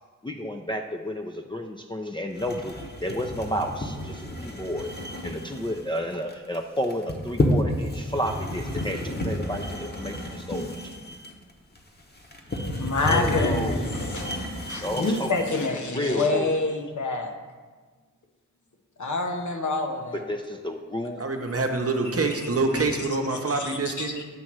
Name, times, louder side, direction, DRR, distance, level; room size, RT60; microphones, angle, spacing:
voice 1, 0.2-4.9 5.2-10.8 13.0-13.8 14.8-15.5 15.9-16.6 20.1-21.2, equal, 15° left, 1 dB, 0.5 m, -31 dB
sound 1, 2.4-15.7, left 1 dB, 30° left, 1.0 m, -31 dB
voice 2, 12.7-14.3 14.7-17.3 19.0-20.2 22.7-22.8 23.6-24.2, left 3 dB, 65° left, 3 dB, 0.8 m, -27 dB
voice 3, 21.2-24.2, right 3 dB, 45° right, 3 dB, 0.8 m, -26 dB
7.6 x 3.0 x 6.0 m, 1.4 s
cardioid pair, 40°, 32 cm